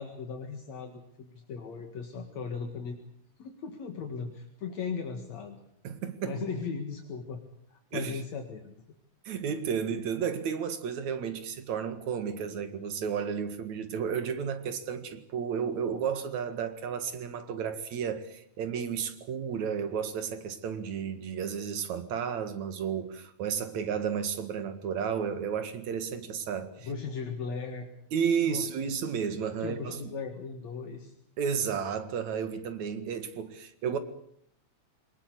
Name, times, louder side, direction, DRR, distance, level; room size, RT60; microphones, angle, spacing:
voice 1, 0.0-3.0 3.4-5.6 6.2-7.4 7.7-8.7 26.8-27.9 28.4-28.7 29.6-31.1, left 5 dB, 70° left, 3.1 m, -37 dB
voice 2, 5.8-6.4 7.9-8.2 9.2-26.9 28.1-30.1 31.4-34.0, right 7 dB, 75° right, 3.2 m, -32 dB
23.5 x 20.0 x 8.4 m
omnidirectional pair, 3.3 m